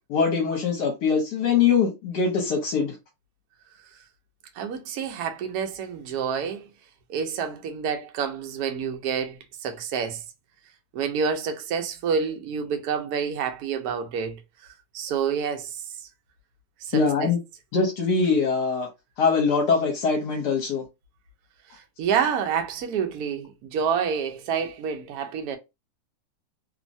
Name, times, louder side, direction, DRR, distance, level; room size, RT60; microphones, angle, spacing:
voice 1, 0.1-3.0 16.9-17.4 17.7-18.9 19.2-20.8, left 5 dB, 65° left, 1.3 m, -22 dB
voice 2, 4.6-6.7 7.1-10.2 10.9-14.4 14.9-15.7 16.8-17.3 21.7-25.6, right 7 dB, 75° right, 0.9 m, -28 dB
3.1 x 2.1 x 2.6 m
omnidirectional pair, 2.1 m